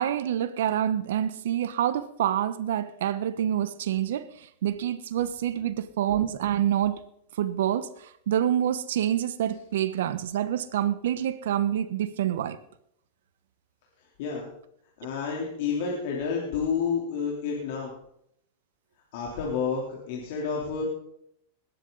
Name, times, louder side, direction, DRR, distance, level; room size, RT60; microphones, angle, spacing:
voice 1, 0.0-7.0 7.3-12.6, right 10 dB, 75° right, 1.0 m, -27 dB
voice 2, 14.2-14.5 15.0-17.9 19.1-20.8, left 6 dB, 65° left, 3.4 m, -30 dB
20.5 x 10.0 x 4.0 m
hypercardioid pair, 120°, 0 cm